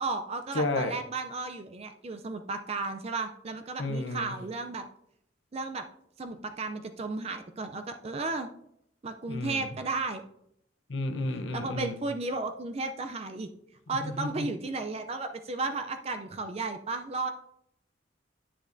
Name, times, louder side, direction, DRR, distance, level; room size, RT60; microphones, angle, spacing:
voice 1, 0.0-4.8 5.5-5.8 6.2-8.5 9.0-10.2 11.5-13.5 13.9-17.3, right 3 dB, 35° right, 7 dB, 0.4 m, -34 dB
voice 2, 0.5-0.9 3.8-4.3 9.3-9.6 10.9-11.9 14.0-14.5, left 2 dB, 80° left, 6 dB, 0.9 m, -31 dB
9.9 x 7.3 x 2.6 m, 0.75 s
head